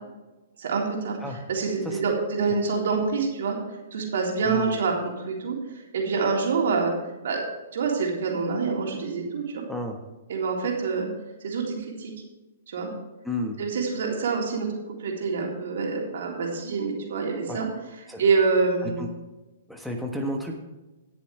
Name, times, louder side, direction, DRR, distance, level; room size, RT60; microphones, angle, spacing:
voice 1, 0.6-1.2 1.5-3.6 3.9-5.6 5.9-6.9 7.2-7.4 7.7-9.7 10.3-11.1 11.4-12.1 12.7-12.9 13.6-14.7 15.0-17.7 18.2-19.1, right 4 dB, 70° right, -1 dB, 3.5 m, -26 dB
voice 2, 4.4-4.8 9.7-10.0 13.2-13.6 17.5-17.6 18.1-18.2 18.8-19.1 19.7-20.6, equal, ahead, 2 dB, 1.4 m, -32 dB
18.0 x 6.9 x 3.4 m, 1.1 s
hypercardioid pair, 135°, 0 cm